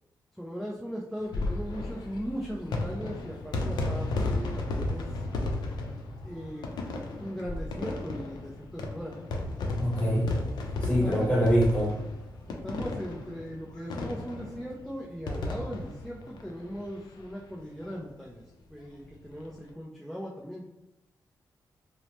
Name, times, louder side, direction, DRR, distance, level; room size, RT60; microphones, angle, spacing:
voice 1, 0.4-5.1 6.2-6.7 7.2-9.1 10.5-11.5 12.5-18.4 18.7-20.6, equal, ahead, -3 dB, 0.3 m, -38 dB
sound 1, 1.2-17.2 17.5-17.6 17.8-17.9 19.2-19.5, left 2 dB, 80° left, 0.4 m, -34 dB
voice 2, 9.8-10.4 10.8-11.9, equal, 15° left, -5 dB, 0.9 m, -24 dB
3.0 x 2.0 x 2.8 m, 0.90 s
wide cardioid pair, 130°, 7 cm